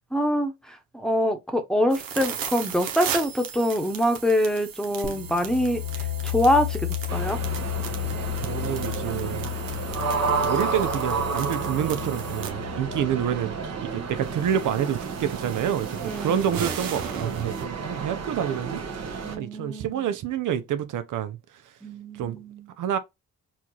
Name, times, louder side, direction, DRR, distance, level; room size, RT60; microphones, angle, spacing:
voice 1, 0.1-6.8 7.1-7.4 16.0-16.5 19.2-20.1 21.8-22.7, left 1 dB, ahead, 1.0 m, -25 dB
sound 1, 1.9-12.5 14.0-17.6, right 8 dB, 85° right, 0.9 m, -37 dB
sound 2, 5.0-14.6, left 14 dB, 15° right, 1.1 m, -33 dB
sound 3, 7.1-19.4, right 5 dB, 50° right, 1.0 m, -31 dB
voice 2, 8.4-9.5 10.4-21.7 22.1-22.4 22.8-23.0, right 9 dB, 65° right, 0.5 m, -28 dB
4.3 x 2.4 x 2.8 m
cardioid pair, 65°, 33 cm